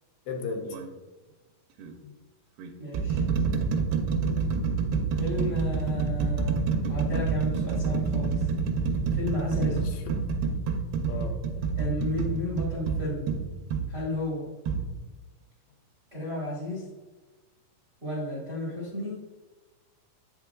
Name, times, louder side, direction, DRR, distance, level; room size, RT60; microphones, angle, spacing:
voice 1, 0.3-0.8 2.0-2.1 5.1-5.3 9.5-10.0 11.1-11.7, left 4 dB, 85° left, 3 dB, 2.9 m, -37 dB
sound 1, 0.6-0.9 1.8-1.9 2.6-13.9 14.7-14.8, right 5 dB, 90° right, 2.7 m, -27 dB
voice 2, 2.8-3.2 5.2-8.5 9.1-9.8 11.8-13.3 13.9-14.5 16.1-16.9 18.0-19.2, left 1 dB, 55° right, -6 dB, 0.6 m, -33 dB
8.1 x 6.7 x 2.3 m, 1.2 s
omnidirectional pair, 4.5 m